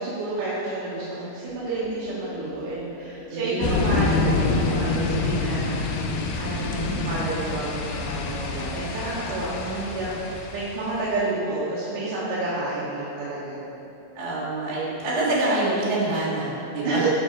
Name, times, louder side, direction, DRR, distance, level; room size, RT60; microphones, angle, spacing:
voice 1, 0.0-6.0 6.4-13.6 16.8-17.1, right 2 dB, 70° right, -9 dB, 2.2 m, -30 dB
sound 1, 1.5-5.1, left 3 dB, 70° left, 1.6 m, -45 dB
voice 2, 3.3-4.1 9.5-10.0 14.1-17.0, right 2 dB, 90° right, -8 dB, 0.8 m, -27 dB
sound 2, 3.6-11.1, left 3 dB, 85° left, 2.5 m, -26 dB
6.2 x 4.7 x 4.7 m, 2.8 s
omnidirectional pair, 4.4 m